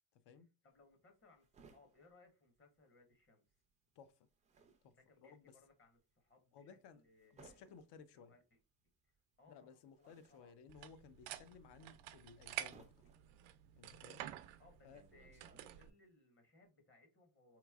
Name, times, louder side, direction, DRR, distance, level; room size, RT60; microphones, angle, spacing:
voice 1, 0.6-3.4 4.9-7.8 8.1-8.6 9.0-9.1 9.4-10.6 14.6-17.6, left 3 dB, 25° left, 0.9 m, -68 dB
sound 1, 0.7-3.3 3.5-16.1, right 4 dB, 20° right, 0.3 m, -67 dB
voice 2, 4.0-4.3 4.8-5.0 5.2-5.5 6.5-7.0 7.3-8.3 9.5-13.1 13.8-14.3 14.8-15.0, left 6 dB, 60° left, 0.5 m, -59 dB
sound 2, 10.7-15.9, right 12 dB, 90° right, 0.5 m, -50 dB
3.9 x 3.0 x 2.3 m
cardioid pair, 160°, 46 cm